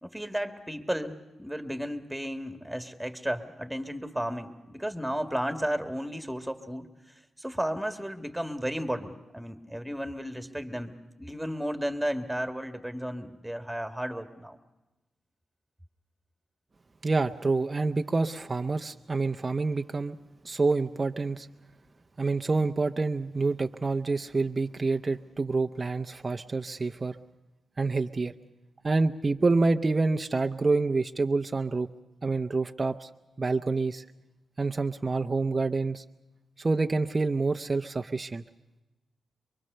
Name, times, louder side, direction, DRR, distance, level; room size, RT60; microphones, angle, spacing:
voice 1, 0.0-6.9 7.4-14.6, equal, 5° right, 7 dB, 1.9 m, -33 dB
voice 2, 17.0-20.2 20.4-21.5 22.2-27.2 27.8-28.3 28.8-31.9 32.2-33.1 33.4-34.0 34.6-36.0 36.6-38.4, right 3 dB, 35° right, 6 dB, 0.7 m, -27 dB
24.0 x 23.0 x 6.8 m, 1.0 s
cardioid pair, 80°, 0 cm